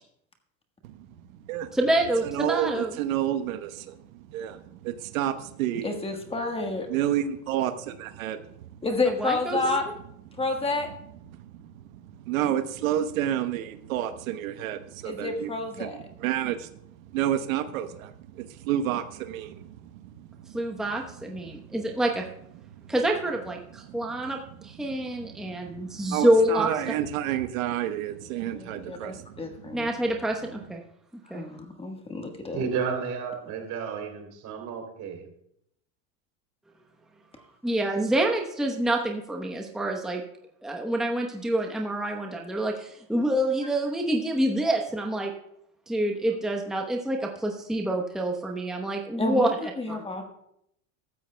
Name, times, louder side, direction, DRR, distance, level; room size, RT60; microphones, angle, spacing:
voice 1, 1.7-3.0 9.2-9.8 20.5-22.2 22.9-24.4 24.6-26.7 29.7-30.8 31.3-31.4 37.6-40.2 40.6-45.3 45.9-49.5 49.9-50.0, right 1 dB, ahead, 1 dB, 1.0 m, -27 dB
voice 2, 2.3-3.9 4.3-4.6 4.8-5.3 5.6-5.9 6.9-8.4 12.3-15.5 15.8-15.9 16.2-16.7 17.1-18.1 18.7-19.6 26.1-29.1, right 11 dB, 80° right, 8 dB, 1.0 m, -29 dB
voice 3, 5.8-7.1 8.8-9.9 10.4-10.9 15.0-16.0 28.5-29.9 31.3-32.6 49.2-50.2, left 3 dB, 15° left, 4 dB, 1.4 m, -30 dB
voice 4, 32.5-35.3, right 6 dB, 45° right, 3 dB, 3.4 m, -32 dB
15.0 x 13.5 x 2.3 m, 0.76 s
supercardioid pair, 125°, 40 cm